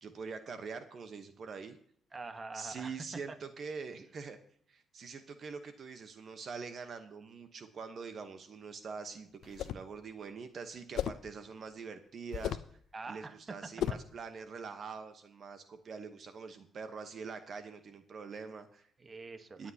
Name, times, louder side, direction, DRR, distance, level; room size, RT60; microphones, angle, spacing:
voice 1, 0.0-1.8 2.5-4.4 4.7-12.8 13.1-18.9 19.6-19.7, right 5 dB, 50° right, 9 dB, 1.0 m, -44 dB
voice 2, 2.1-3.4 12.9-13.7 19.0-19.7, right 3 dB, 30° right, 9 dB, 1.1 m, -45 dB
sound 1, 9.4-9.9 11.0-11.3 12.3-12.7 13.8-14.1, left 10 dB, 75° left, 0.5 m, -35 dB
23.0 x 8.7 x 2.8 m, 0.62 s
cardioid pair, 90°, 0 cm